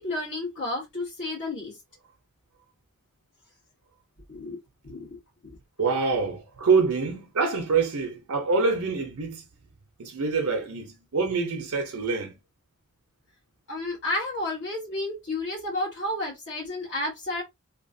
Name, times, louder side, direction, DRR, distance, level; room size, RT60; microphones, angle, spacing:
voice 1, 0.0-1.8 4.3-4.6 4.8-5.2 5.4-5.6 13.7-17.4, left 2 dB, 55° left, 1.2 m, -31 dB
voice 2, 5.8-9.4 10.0-12.3, right 4 dB, 70° right, 0.7 m, -25 dB
2.9 x 2.4 x 2.6 m
head